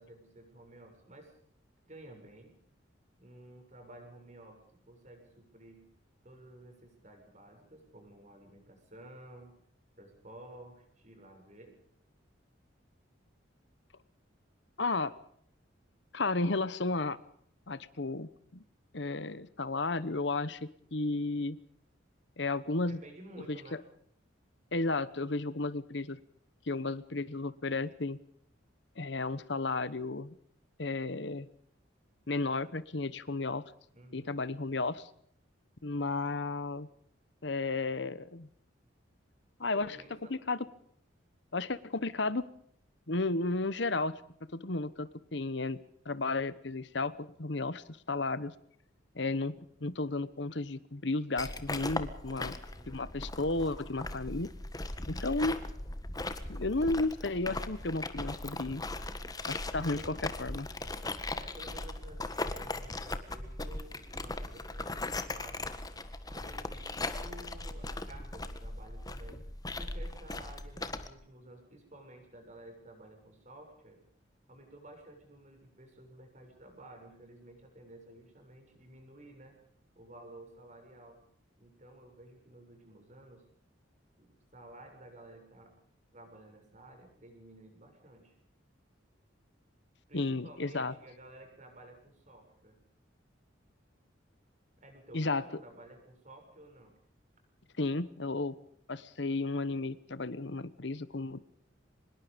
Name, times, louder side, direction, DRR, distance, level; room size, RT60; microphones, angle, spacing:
voice 1, 0.0-1.4 1.9-2.5 3.2-5.8 6.2-9.5 10.0-11.8 22.9-23.9 33.9-34.5 39.7-40.3 52.2-53.0 60.0-60.2 61.3-65.8 66.3-74.0 74.5-79.5 79.9-81.2 81.6-83.5 84.2-85.7 86.1-88.3 90.1-92.8 94.8-96.9, right 1 dB, 35° right, 4 dB, 7.2 m, -53 dB
voice 2, 14.8-15.1 16.1-17.2 17.7-18.6 18.9-21.6 22.4-23.0 23.5-23.6 24.7-26.2 26.7-28.2 29.0-30.3 30.8-31.5 32.3-33.6 34.1-35.1 35.8-36.9 37.4-38.5 39.6-40.0 40.3-40.6 41.5-42.4 43.1-44.2 44.5-45.8 46.0-48.5 49.1-49.5 49.8-52.5 52.9-54.5 55.1-55.6 56.5-58.8 59.5-60.7 90.1-90.9 95.1-95.4 97.8-98.6 98.9-101.4, left 3 dB, 60° left, 16 dB, 1.1 m, -33 dB
sound 1, 51.4-71.1, left 2 dB, 20° left, 1.6 m, -39 dB
24.5 x 21.0 x 5.2 m, 0.67 s
head